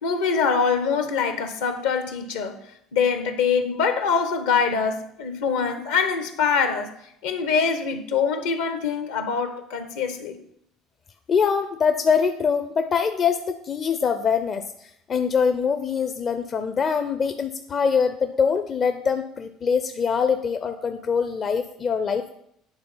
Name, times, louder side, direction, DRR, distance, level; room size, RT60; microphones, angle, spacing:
voice 1, 0.0-2.6 2.9-6.9 7.2-10.4, left 5 dB, 75° left, 0.9 m, -24 dB
voice 2, 11.3-22.3, left 6 dB, 40° left, 0.5 m, -23 dB
9.0 x 3.8 x 5.6 m
hypercardioid pair, 60°, 0 cm